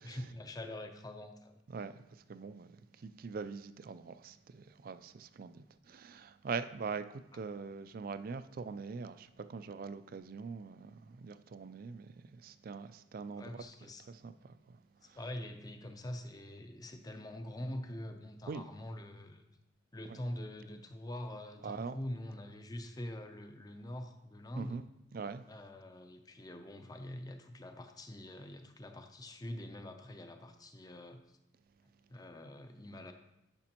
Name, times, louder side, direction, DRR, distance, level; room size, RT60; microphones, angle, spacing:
voice 1, 0.0-1.6 13.4-14.0 15.1-19.4 19.9-24.8 25.5-31.2 32.1-33.1, left 1 dB, 20° left, 0.6 m, -44 dB
voice 2, 1.7-2.0 2.3-13.6 14.1-14.8 15.1-15.2 18.5-18.6 20.1-20.2 21.6-22.0 24.6-24.8 25.1-25.4, right 5 dB, 50° right, 0.3 m, -43 dB
10.5 x 6.0 x 2.9 m
head